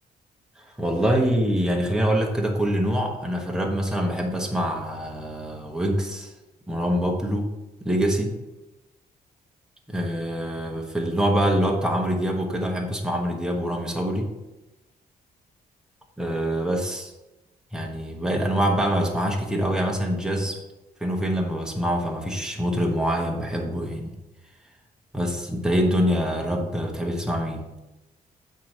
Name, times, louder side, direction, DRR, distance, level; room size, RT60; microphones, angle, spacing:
voice 1, 0.8-6.3 6.7-7.5 7.8-8.3 9.9-14.3 16.2-17.1 17.7-20.6 21.0-24.1 25.1-27.7, equal, 5° right, 0 dB, 1.2 m, -25 dB
8.4 x 4.7 x 5.4 m, 1.0 s
wide cardioid pair, 155°, 16 cm